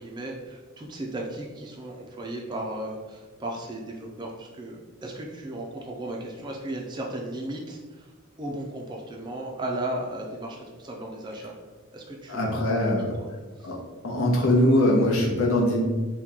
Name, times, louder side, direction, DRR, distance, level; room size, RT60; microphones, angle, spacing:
voice 1, 0.0-8.1 8.4-11.5 11.9-12.5 12.8-13.3 13.6-13.7, right 1 dB, 20° right, 0 dB, 0.3 m, -35 dB
voice 2, 12.3-13.1 13.6-13.8 14.0-15.8, left 1 dB, 80° left, -2 dB, 0.8 m, -22 dB
2.9 x 2.2 x 3.6 m, 1.3 s
head